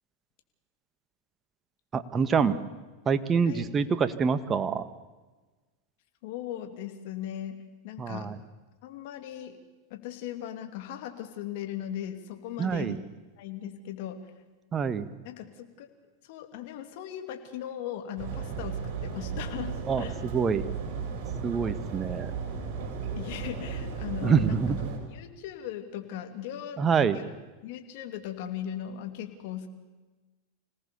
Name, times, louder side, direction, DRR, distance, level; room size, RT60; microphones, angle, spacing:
voice 1, 1.9-2.6 3.0-4.9 8.0-8.3 12.6-13.0 14.7-15.1 19.9-20.6 21.4-22.3 24.2-24.9 26.8-27.2, right 6 dB, 25° right, 11 dB, 1.7 m, -26 dB
voice 2, 6.2-8.3 8.8-9.6 9.9-13.0 13.4-14.2 15.2-15.9 16.2-20.2 23.2-24.6 25.1-27.3 27.6-29.7, left 10 dB, 60° left, 6 dB, 2.8 m, -38 dB
sound 1, 18.2-25.0, right 5 dB, 50° right, 7.3 m, -35 dB
26.5 x 18.5 x 7.0 m, 1.2 s
hypercardioid pair, 105°, 0 cm